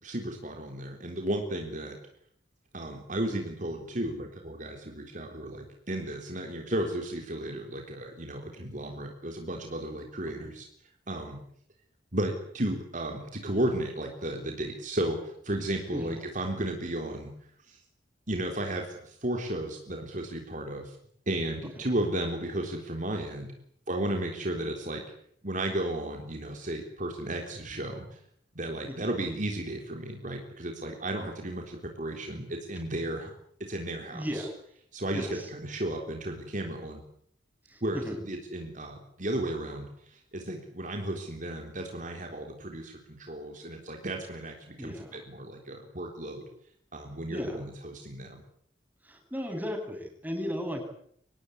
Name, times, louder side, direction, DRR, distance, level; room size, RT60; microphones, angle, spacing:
voice 1, 0.0-2.0 2.7-10.7 11.1-11.4 12.1-17.3 17.6-17.8 18.3-21.0 21.3-23.5 23.9-25.0 25.4-28.2 28.5-33.3 33.6-34.5 34.9-37.0 37.8-46.5 46.9-48.4, right 1 dB, 45° right, 3 dB, 3.7 m, -34 dB
voice 2, 34.1-34.5 35.1-35.5 37.7-38.2 44.8-45.2 47.3-47.6 49.0-50.8, equal, 10° right, 3 dB, 7.7 m, -35 dB
25.0 x 19.0 x 9.9 m, 0.65 s
head